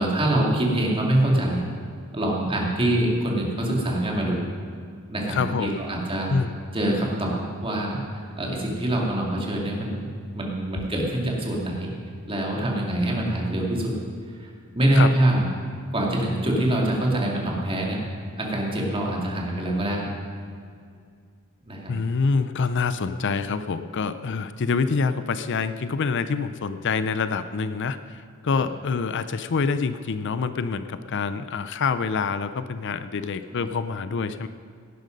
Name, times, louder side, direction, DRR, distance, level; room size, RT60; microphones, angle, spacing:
voice 1, 0.0-1.6 2.1-4.4 5.1-6.3 6.7-11.9 12.3-13.9 14.4-15.5 15.9-18.0 18.4-20.1 21.7-21.9 28.5-28.6 33.5-33.6, right 1 dB, 25° right, -2 dB, 2.6 m, -24 dB
voice 2, 5.3-5.8 6.3-6.5 14.9-15.1 21.9-34.5, left 5 dB, 60° left, 12 dB, 0.5 m, -26 dB
18.0 x 10.5 x 5.3 m, 2.2 s
head